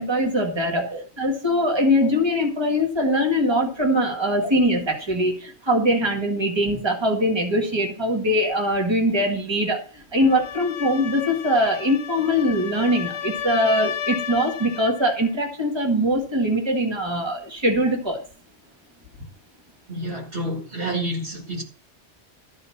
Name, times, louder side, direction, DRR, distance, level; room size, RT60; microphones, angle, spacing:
voice 1, 0.0-0.8 1.2-18.2, equal, 20° right, 1.9 m, -22 dB
sound 1, 10.1-15.1, left 9 dB, 70° left, 1.0 m, -32 dB
voice 2, 19.9-21.6, right 1 dB, 50° right, 2.1 m, -29 dB
13.5 x 4.5 x 7.1 m
omnidirectional pair, 1.2 m